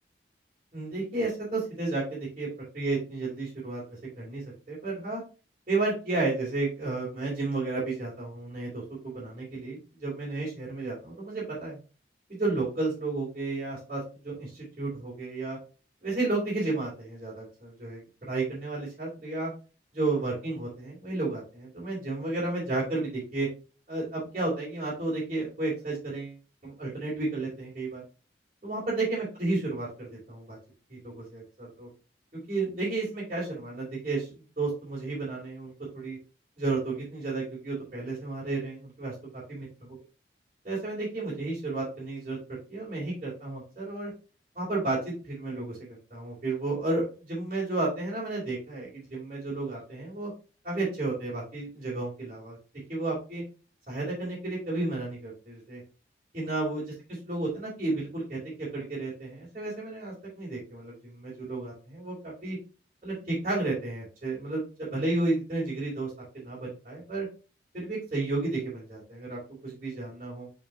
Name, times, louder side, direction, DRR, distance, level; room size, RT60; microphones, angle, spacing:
voice 1, 0.7-2.5 2.7-5.2 5.7-11.8 12.4-15.6 16.0-19.5 19.9-23.5 23.9-26.3 26.6-28.0 28.6-30.6 30.9-31.9 32.5-34.3 34.6-36.2 36.6-39.1 39.5-39.7 40.6-44.1 44.6-50.3 50.6-52.6 52.9-53.4 53.9-55.8 56.3-56.8 57.3-62.6 63.0-67.3 67.7-70.5, right 2 dB, 35° right, -9 dB, 3.5 m, -32 dB
7.1 x 4.8 x 2.8 m, 0.33 s
head